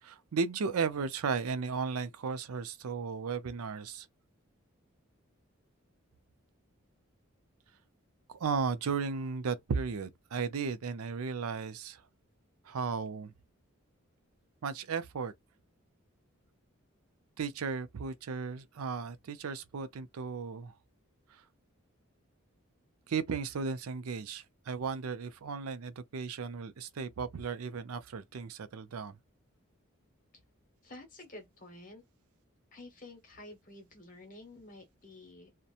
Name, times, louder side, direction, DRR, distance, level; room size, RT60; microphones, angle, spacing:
voice 1, 0.0-4.1 8.3-12.1 12.6-13.3 14.6-15.3 17.4-20.8 21.3-21.5 23.1-29.2, right 5 dB, 90° right, 0.5 m, -35 dB
voice 2, 30.8-32.0 32.7-35.5, left 2 dB, 40° left, 1.2 m, -50 dB
2.8 x 2.1 x 2.4 m
head